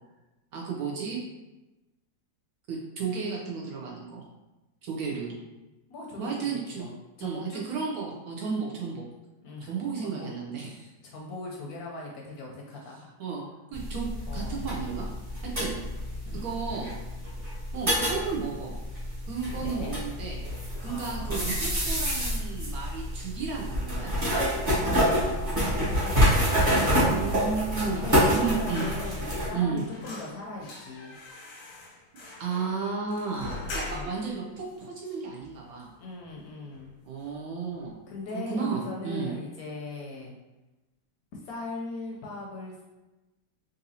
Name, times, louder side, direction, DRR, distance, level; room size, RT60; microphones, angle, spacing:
voice 1, 0.5-1.2 2.7-4.3 4.8-5.4 6.2-6.9 7.2-9.1 9.6-10.9 13.2-13.4 13.7-15.1 15.4-15.8 16.1-16.9 17.7-18.8 19.3-20.4 20.8-24.1 27.0-28.9 29.5-29.8 32.3-35.9 37.1-38.0 38.3-39.3, right 5 dB, 70° right, -2 dB, 0.9 m, -33 dB
voice 2, 5.9-7.6 9.4-10.3 11.0-13.1 14.3-14.6 16.2-16.5 19.5-20.0 20.8-21.7 24.8-26.9 27.8-31.2 33.8-34.1 36.0-36.9 38.1-40.3 41.4-42.8, left 2 dB, 70° left, -1 dB, 1.0 m, -39 dB
sound 1, 13.7-29.5, equal, 25° right, 0.9 m, -27 dB
sound 2, 28.2-29.5 29.8-34.3 34.7-34.8 35.1-35.9 36.2-36.4 36.7-37.4 37.7-37.9, left 2 dB, 90° left, 1.4 m, -42 dB
3.9 x 2.6 x 2.7 m, 1.1 s
omnidirectional pair, 1.9 m